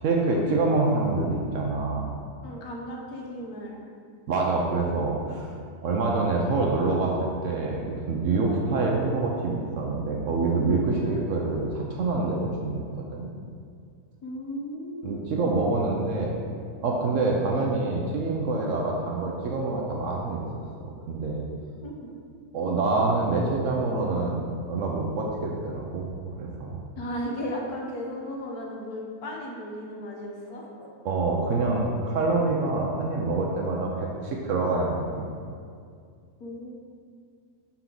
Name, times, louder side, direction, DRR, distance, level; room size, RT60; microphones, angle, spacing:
voice 1, 0.0-2.2 4.3-5.5 5.8-12.8 13.1-13.3 15.0-16.3 16.8-20.4 20.8-21.5 22.5-26.8 31.0-35.3, right 3 dB, 65° right, -1 dB, 0.9 m, -26 dB
voice 2, 2.4-3.8 11.0-11.2 14.2-15.2 21.8-22.1 27.0-30.9 36.4-36.7, equal, 70° left, -1 dB, 1.3 m, -35 dB
5.8 x 4.5 x 3.9 m, 2.2 s
omnidirectional pair, 1.7 m